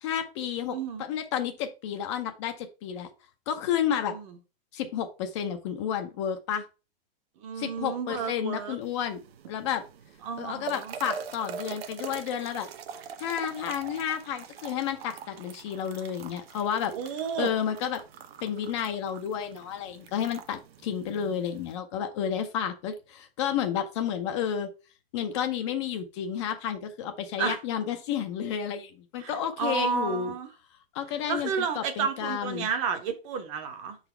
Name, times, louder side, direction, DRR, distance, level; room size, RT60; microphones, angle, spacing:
voice 1, 0.0-3.1 3.5-4.1 4.7-6.7 7.6-9.2 9.5-9.8 10.4-12.7 13.2-16.9 17.4-18.0 18.4-24.7 25.1-30.3 30.9-32.7, left 8 dB, 30° left, 0.6 m, -31 dB
voice 2, 0.7-1.0 4.1-4.3 7.4-8.8 10.2-10.9 16.9-17.5 27.4-27.6 29.2-30.5 31.3-34.0, right 6 dB, 35° right, 0.9 m, -31 dB
sound 1, 8.8-21.8, right 7 dB, 80° right, 0.9 m, -44 dB
5.7 x 4.1 x 4.4 m
supercardioid pair, 165°, 30 cm